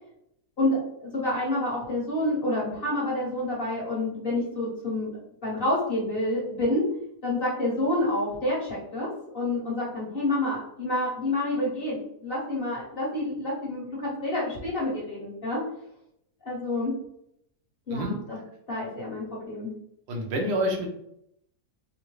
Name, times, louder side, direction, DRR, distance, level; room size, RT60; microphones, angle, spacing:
voice 1, 0.6-5.1 5.4-6.8 7.2-9.1 9.3-15.6 16.4-16.9 17.9-18.4 18.7-19.7, left 1 dB, 40° left, -6 dB, 1.1 m, -28 dB
voice 2, 20.1-20.9, equal, 80° right, 1 dB, 1.4 m, -27 dB
3.7 x 2.1 x 3.1 m, 0.74 s
omnidirectional pair, 1.8 m